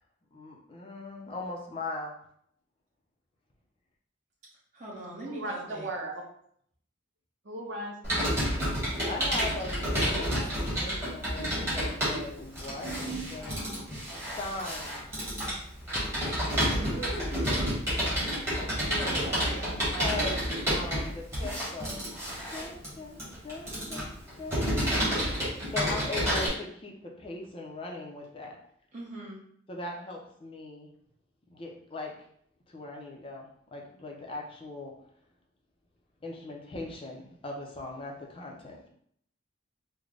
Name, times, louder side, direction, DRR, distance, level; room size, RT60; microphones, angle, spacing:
voice 1, 0.3-2.2 9.1-13.6 14.4-15.0 19.5-20.4 20.7-22.0 22.5-28.6 29.7-30.9 31.5-32.3 32.7-35.0 36.2-38.9, left 2 dB, 30° left, 0 dB, 0.5 m, -40 dB
voice 2, 4.7-5.9 9.9-10.9 16.8-18.0 18.8-19.7 21.4-21.6 28.9-29.4, right 1 dB, 40° right, -5 dB, 1.0 m, -40 dB
voice 3, 5.2-6.2 7.4-8.6 10.1-10.5 10.8-11.1 19.2-20.4, right 1 dB, 65° right, 1 dB, 0.6 m, -39 dB
Computer keyboard, 8.0-26.5, equal, 15° right, 1.3 m, -30 dB
3.2 x 2.1 x 3.8 m, 0.66 s
head